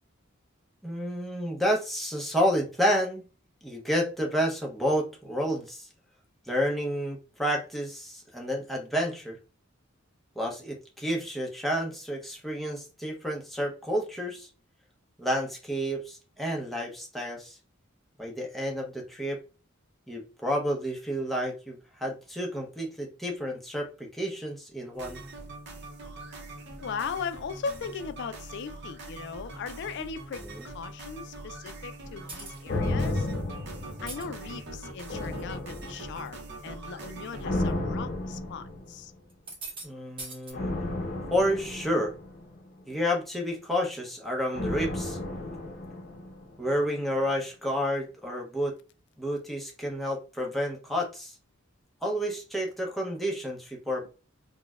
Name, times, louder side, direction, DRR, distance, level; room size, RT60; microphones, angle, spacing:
voice 1, 0.8-3.2 3.6-5.9 6.5-9.4 10.4-14.5 15.2-17.6 18.2-19.4 20.1-25.2 30.4-30.7 39.8-40.7 41.3-42.1 42.9-45.2 46.6-48.7 49.2-51.3 52.0-54.1, equal, ahead, 0.7 m, -30 dB
sound 1, 24.9-37.5, right 2 dB, 60° right, 0.7 m, -43 dB
voice 2, 26.8-33.3 34.0-39.1, left 6 dB, 60° left, 0.4 m, -38 dB
sound 2, 32.3-32.6 33.9-34.2 35.0-35.4 35.9-36.3 36.6-36.7 37.6-37.7 39.3-39.9 40.2-40.5, right 3 dB, 25° right, 1.1 m, -41 dB
sound 3, 32.7-34.6 35.1-36.4 37.4-39.1 40.5-42.9 44.5-46.7 47.0-47.1, left 2 dB, 45° left, 0.8 m, -33 dB
3.9 x 2.1 x 2.3 m
head